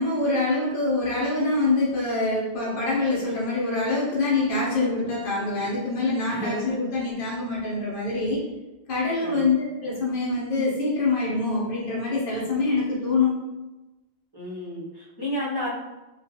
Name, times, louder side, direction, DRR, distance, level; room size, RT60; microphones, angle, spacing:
voice 1, 0.0-8.4 8.9-13.3, left 3 dB, 60° left, -5 dB, 0.9 m, -25 dB
voice 2, 6.3-6.7 9.2-9.5 14.3-15.7, equal, 30° right, -9 dB, 0.6 m, -31 dB
2.4 x 2.3 x 2.7 m, 1.1 s
omnidirectional pair, 1.0 m